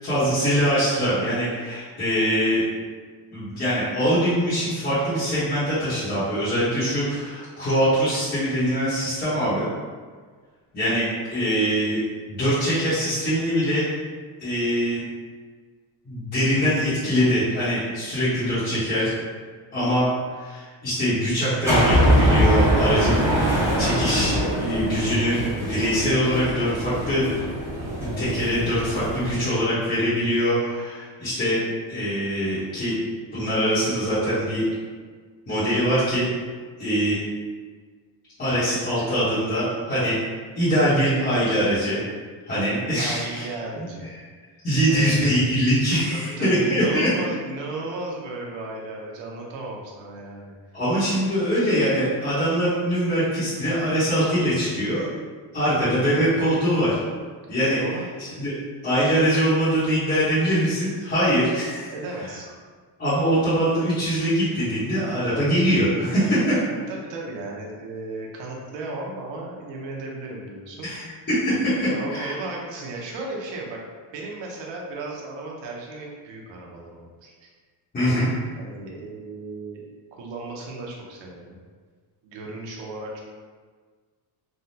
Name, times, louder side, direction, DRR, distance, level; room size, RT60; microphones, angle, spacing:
voice 1, 0.0-2.6 3.3-9.7 10.7-12.0 12.3-13.8 14.4-15.0 16.0-19.1 19.7-27.3 28.0-31.6 31.9-33.0 33.3-34.6 35.5-36.3 36.8-37.2 38.4-40.1 40.5-42.0 42.5-43.4 43.7-43.9 44.6-47.1 50.7-55.0 55.5-57.0 57.5-57.8 58.2-58.5 58.8-61.9 63.0-66.6 70.8-72.3 77.9-78.3, equal, 20° left, -14 dB, 0.9 m, -23 dB
sound 1, 21.6-29.4, equal, 5° right, 0.8 m, -23 dB
voice 2, 43.0-44.1 44.9-45.2 46.1-50.5 57.8-58.1 61.9-62.5 66.7-70.9 71.8-73.8 74.1-77.5 78.6-79.8 80.1-81.6 82.2-83.2, right 2 dB, 65° right, -1 dB, 0.7 m, -35 dB
3.4 x 2.1 x 2.7 m, 1.5 s
cardioid pair, 160°, 47 cm